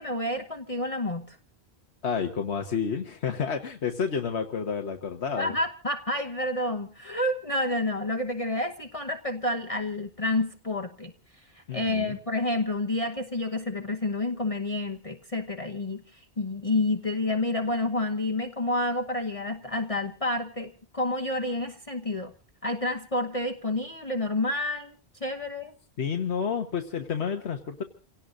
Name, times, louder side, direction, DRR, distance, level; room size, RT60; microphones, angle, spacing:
voice 1, 0.0-1.4 5.4-11.1 11.7-22.3 22.6-24.9 25.2-25.7, left 2 dB, 35° left, 3 dB, 1.2 m, -29 dB
voice 2, 2.0-5.5 11.7-12.2 26.0-27.8, left 6 dB, 90° left, 4 dB, 1.5 m, -30 dB
29.0 x 17.5 x 2.6 m, 0.36 s
omnidirectional pair, 1.1 m